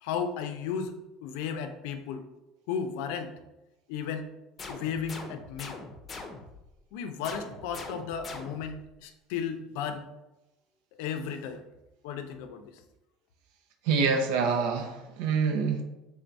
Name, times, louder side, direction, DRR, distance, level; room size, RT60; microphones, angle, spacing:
voice 1, 0.0-2.2 2.7-3.3 3.9-4.3 4.7-5.8 6.9-10.1 11.0-11.6 12.0-12.7, left 7 dB, 80° left, 8 dB, 0.5 m, -34 dB
sound 1, 4.6-6.7 7.2-8.8, left 3 dB, 30° left, 0.6 m, -42 dB
voice 2, 13.8-15.8, right 5 dB, 80° right, 5 dB, 0.6 m, -26 dB
3.5 x 2.6 x 4.5 m, 0.96 s
supercardioid pair, 125°, 0 cm